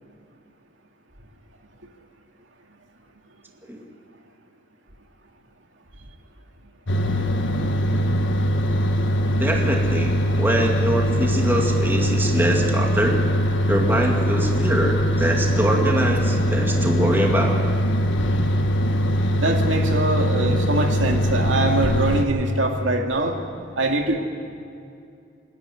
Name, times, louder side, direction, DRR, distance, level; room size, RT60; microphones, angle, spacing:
sound 1, 6.9-22.3, equal, 75° left, 1.5 m, -22 dB
voice 1, 9.4-13.2 13.6-17.6, right 1 dB, 10° right, 0 dB, 2.1 m, -23 dB
voice 2, 19.4-23.4 23.8-24.2, right 2 dB, 75° right, 2 dB, 2.2 m, -23 dB
29.0 x 11.0 x 9.9 m, 2.5 s
head